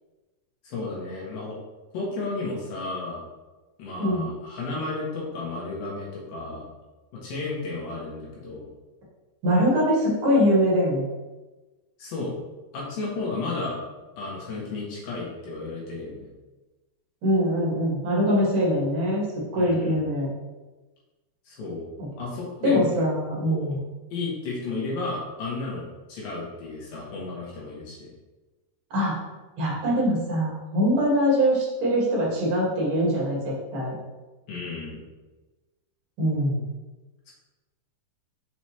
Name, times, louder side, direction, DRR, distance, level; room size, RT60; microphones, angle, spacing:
voice 1, 0.6-1.6 1.9-3.2 3.8-6.6 7.1-8.6 12.0-12.4 12.7-13.8 14.2-16.3 19.5-20.0 21.5-21.9 22.2-23.1 23.4-23.8 24.1-28.1 34.5-35.0 37.3-37.4, left 3 dB, 65° left, -4 dB, 3.0 m, -33 dB
voice 2, 9.4-11.1 17.2-20.3 22.0-22.1 22.6-23.8 28.9-29.2 29.6-34.0 36.2-36.6, equal, 50° right, -5 dB, 1.7 m, -23 dB
6.2 x 5.1 x 3.0 m, 1.2 s
omnidirectional pair, 4.8 m